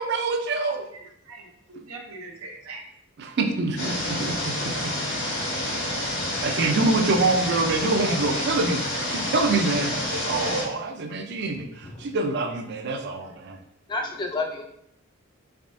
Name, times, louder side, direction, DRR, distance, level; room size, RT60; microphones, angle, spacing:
voice 1, 0.0-0.8 3.2-3.9 4.2-4.5 5.5-6.0 6.4-8.8 9.1-13.6, right 3 dB, 55° right, 6 dB, 0.4 m, -25 dB
voice 2, 0.9-2.8, right 3 dB, 90° right, 1 dB, 0.7 m, -42 dB
sound 1, 3.8-10.6, left 1 dB, 85° left, 1.4 m, -28 dB
voice 3, 5.4-5.8 11.8-12.1 13.9-14.6, left 3 dB, 20° left, 3 dB, 0.4 m, -31 dB
3.4 x 3.3 x 2.6 m, 0.74 s
head